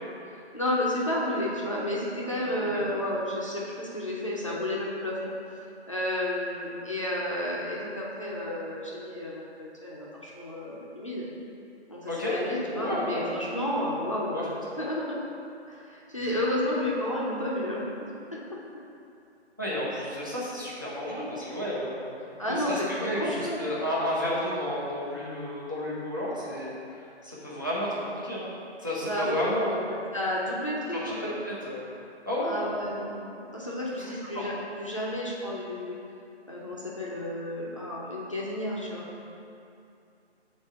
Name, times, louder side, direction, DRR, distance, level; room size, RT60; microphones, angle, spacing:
voice 1, 0.5-5.3 5.9-11.3 11.9-15.2 15.7-18.6 22.4-23.7 29.0-29.5 29.9-31.3 32.4-36.0 36.5-39.1, left 1 dB, 30° left, -6 dB, 0.6 m, -31 dB
voice 2, 2.5-2.8 12.1-13.2 14.3-14.5 16.2-16.3 19.6-26.7 27.2-28.5 28.8-29.7 30.9-31.9 32.3-32.5 34.0-34.5, left 1 dB, 20° right, -8 dB, 0.6 m, -32 dB
7.0 x 2.7 x 5.8 m, 2.6 s
figure-of-eight pair, 170°, 34 cm